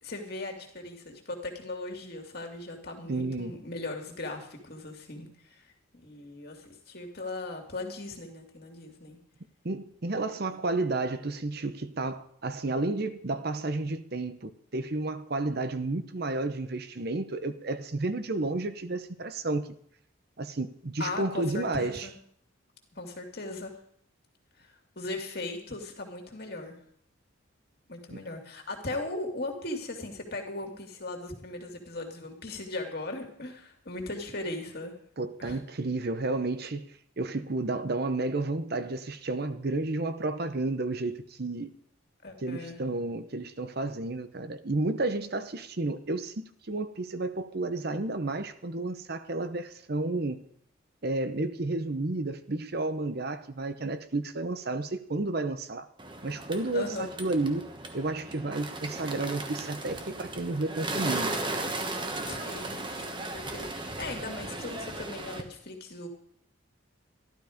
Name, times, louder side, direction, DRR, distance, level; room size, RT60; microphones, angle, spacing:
voice 1, 0.0-5.7 6.0-9.2 21.0-22.2 23.0-23.8 24.6-26.8 27.9-34.9 35.4-35.6 42.2-42.8 56.7-57.1 62.2-66.1, left 2 dB, 50° left, 2.6 m, -38 dB
voice 2, 3.1-3.6 9.6-19.7 20.4-22.1 28.1-28.2 35.2-36.9 37.2-41.7 42.4-50.4 51.0-55.9 56.2-57.7 57.9-61.3, right 2 dB, 50° right, 0.8 m, -31 dB
Bird, 56.0-65.4, right 2 dB, 25° right, 1.3 m, -36 dB
14.0 x 12.0 x 5.1 m
head